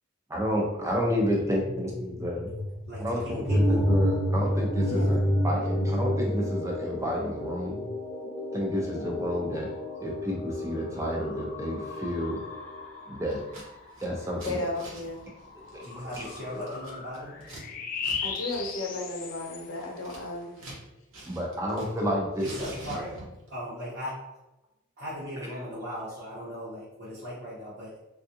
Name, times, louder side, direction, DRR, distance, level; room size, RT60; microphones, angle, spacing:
voice 1, 0.3-2.5 3.0-7.9 8.5-9.7 10.0-12.4 13.1-13.4 14.0-14.6 15.7-15.8 16.2-16.8 21.3-22.6, equal, 15° right, -1 dB, 0.5 m, -30 dB
sound 1, 1.3-7.3 7.9-20.0, left 4 dB, 40° left, 0.3 m, -40 dB
voice 2, 2.9-3.9 15.8-17.4 22.6-23.1 23.5-24.2 25.0-27.9, equal, 50° right, -11 dB, 0.9 m, -38 dB
sound 2, 3.5-12.9, equal, 5° left, 0.8 m, -29 dB
voice 3, 4.8-5.2 14.2-15.2 18.2-20.6, left 2 dB, 70° left, -1 dB, 0.8 m, -34 dB
Scissors, 13.3-13.7 13.9-17.6 18.0-18.2 18.4-18.6 18.9-20.8 21.1-22.0 22.3-23.5, right 1 dB, 75° right, 1.0 m, -45 dB
3.5 x 2.3 x 2.8 m, 0.96 s
head